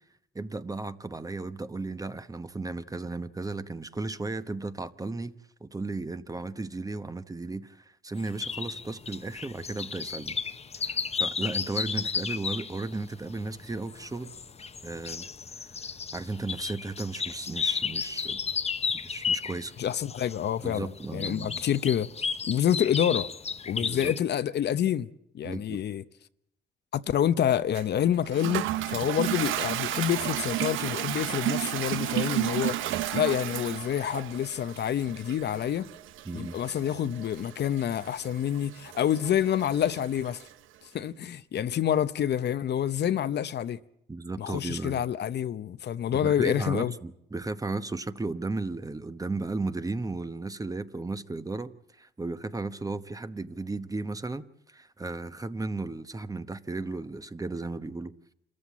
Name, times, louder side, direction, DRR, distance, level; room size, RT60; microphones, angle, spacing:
voice 1, 0.3-5.3 5.6-10.4 10.8-14.3 14.8-15.3 15.6-15.7 16.1-18.5 18.9-19.7 20.6-21.6 23.8-24.1 25.4-25.8 36.2-36.5 44.1-45.0 46.1-58.1, right 3 dB, 15° right, 1.0 m, -35 dB
sound 1, 8.2-24.2, left 5 dB, 30° left, 0.9 m, -33 dB
voice 2, 19.8-22.1 22.5-23.3 23.7-25.1 25.3-26.0 26.9-32.8 33.1-35.9 36.3-40.4 40.9-43.8 44.4-46.9, left 10 dB, 60° left, 0.8 m, -27 dB
Toilet flush, 27.8-40.5, right 13 dB, 80° right, 0.8 m, -33 dB
26.5 x 14.0 x 8.5 m
cardioid pair, 90°, 20 cm